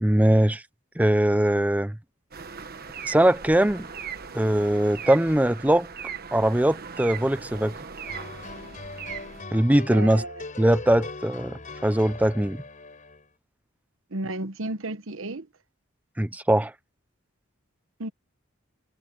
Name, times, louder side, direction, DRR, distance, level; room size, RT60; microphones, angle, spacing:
voice 1, 0.0-0.6 1.0-2.0 3.1-3.9 4.3-5.9 6.3-7.8 9.5-10.2 10.6-11.5 11.8-12.6 16.2-16.7, right 1 dB, 5° right, 0.6 m, -21 dB
sound 1, 2.3-9.4, right 6 dB, 45° right, 1.3 m, -39 dB
sound 2, 8.0-13.2, left 3 dB, 40° left, 4.1 m, -40 dB
voice 2, 9.9-10.4 14.1-15.5 18.0-18.1, right 2 dB, 65° right, 1.1 m, -33 dB
head